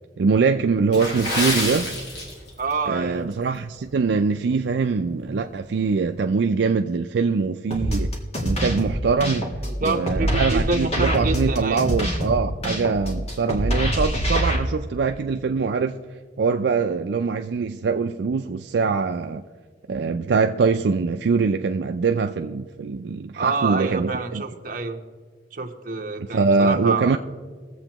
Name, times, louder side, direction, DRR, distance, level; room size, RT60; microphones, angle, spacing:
voice 1, 0.2-1.9 2.9-8.1 8.4-9.5 9.8-16.0 16.4-19.4 19.9-24.4 26.3-27.2, right 4 dB, 80° right, 0.4 m, -23 dB
Water / Splash splatter, 0.9-2.8 3.1-3.3 3.9-4.1 4.6-4.7, left 1 dB, 80° left, 2.6 m, -28 dB
voice 2, 2.6-3.3 9.6-11.8 23.4-25.0 25.5-27.2, right 3 dB, 50° right, 1.0 m, -27 dB
sound 1, 7.7-14.6, equal, 35° left, 1.6 m, -25 dB
22.0 x 7.7 x 3.0 m
head